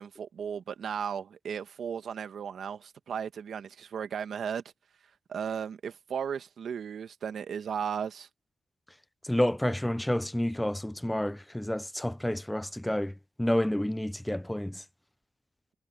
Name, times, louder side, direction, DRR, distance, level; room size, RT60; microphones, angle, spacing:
voice 1, 0.0-4.6 5.3-8.3, right 7 dB, 70° right, 1.7 m, -35 dB
voice 2, 9.2-14.8, left 1 dB, 5° left, 0.5 m, -29 dB
cardioid pair, 90°, 0 cm